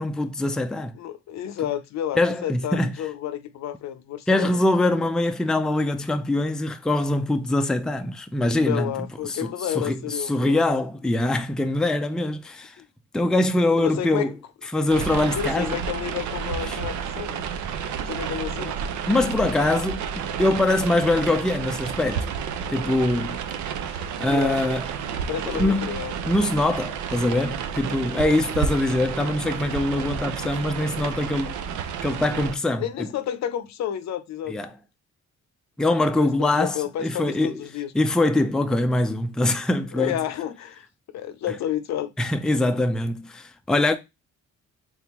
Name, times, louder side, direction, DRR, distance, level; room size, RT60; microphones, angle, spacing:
voice 1, 0.0-0.9 2.2-2.9 4.3-8.9 9.2-12.8 13.1-14.3 14.7-15.8 16.7-16.8 19.1-22.3 22.7-23.4 24.2-24.9 25.4-25.9 26.3-31.6 32.0-33.1 34.5-34.7 35.8-37.6 37.9-40.1 42.2-44.0, left 2 dB, ahead, 0.4 m, -23 dB
voice 2, 1.0-4.5 8.6-10.6 13.8-14.3 15.3-17.4 18.0-18.7 23.9-24.6 25.3-26.1 28.1-28.2 32.8-34.5 36.2-37.9 40.0-40.9 41.1-42.1, left 11 dB, 65° left, 0.5 m, -30 dB
sound 1, 14.9-32.6, right 7 dB, 75° right, 0.6 m, -31 dB
3.5 x 3.5 x 2.9 m
cardioid pair, 90°, 30 cm